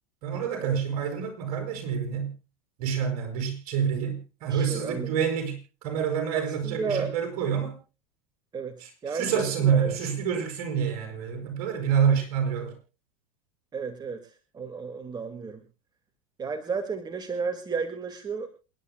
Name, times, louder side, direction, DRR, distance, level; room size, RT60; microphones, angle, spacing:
voice 1, 0.2-2.3 2.8-7.8 8.8-12.8, right 7 dB, 60° right, 6 dB, 7.6 m, -27 dB
voice 2, 4.5-5.1 6.3-7.1 8.5-10.0 13.7-15.6 16.4-18.5, right 5 dB, 20° right, 7 dB, 2.1 m, -33 dB
28.5 x 11.5 x 2.3 m, 0.32 s
hypercardioid pair, 105°, 19 cm